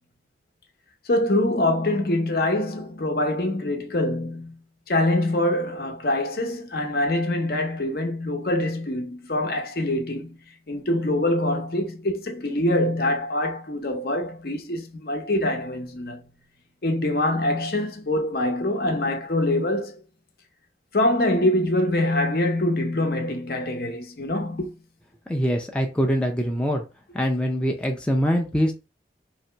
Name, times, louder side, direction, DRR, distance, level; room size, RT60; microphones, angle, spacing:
voice 1, 1.1-4.6 4.9-10.4 10.7-16.2 16.8-20.0 20.9-24.8, left 1 dB, 55° left, 0.8 m, -24 dB
voice 2, 25.3-26.8 27.1-28.7, equal, 5° left, 0.4 m, -23 dB
2.9 x 2.7 x 4.4 m
head